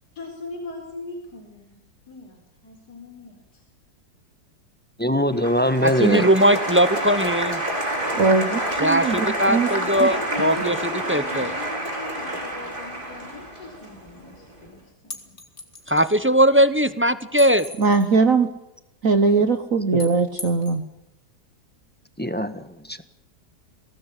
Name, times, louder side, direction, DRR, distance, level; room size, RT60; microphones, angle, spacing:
voice 1, 0.1-1.8 2.1-3.6 9.5-15.3, left 3 dB, 60° left, 3 dB, 4.6 m, -39 dB
voice 2, 5.0-6.3 19.9-20.0 22.2-23.0, equal, 5° left, 10 dB, 1.3 m, -22 dB
Applause, 5.4-14.4, right 1 dB, 30° right, 5.4 m, -28 dB
voice 3, 5.8-7.6 8.8-10.7 11.1-11.5 15.9-17.6, equal, 10° right, 13 dB, 0.8 m, -19 dB
voice 4, 8.1-9.7 10.0-10.1 17.8-18.5 19.0-20.8, right 4 dB, 50° right, 10 dB, 1.6 m, -20 dB
sound 1, 15.1-16.1 17.4-18.1 20.0-20.8, left 2 dB, 40° left, 3.4 m, -38 dB
24.0 x 18.5 x 10.0 m, 0.84 s
omnidirectional pair, 1.9 m